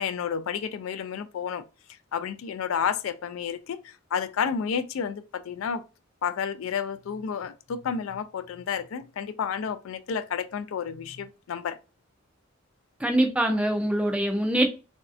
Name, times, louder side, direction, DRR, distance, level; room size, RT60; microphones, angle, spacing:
voice 1, 0.0-1.6 2.1-5.8 6.2-11.8, left 7 dB, 70° left, 0.3 m, -31 dB
voice 2, 13.0-14.7, right 1 dB, 5° right, 0.4 m, -23 dB
3.1 x 2.6 x 2.4 m
head